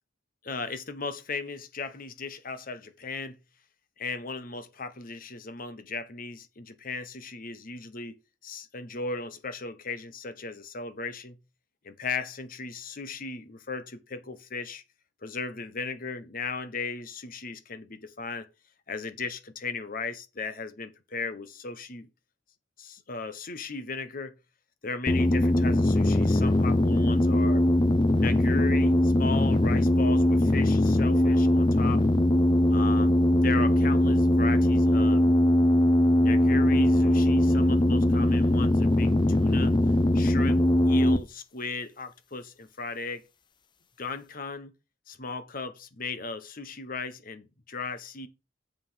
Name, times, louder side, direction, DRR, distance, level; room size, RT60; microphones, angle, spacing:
voice 1, 0.4-3.4 4.0-11.4 11.8-14.8 15.2-18.5 18.9-22.1 22.8-24.3 24.8-27.6 28.2-32.0 32.7-35.4 36.2-39.8 40.1-43.2 44.0-44.7 45.1-48.3, left 4 dB, 50° left, 1.2 m, -36 dB
sound 1, 25.1-41.2, left 1 dB, 25° left, 0.6 m, -21 dB
7.6 x 5.5 x 5.8 m
head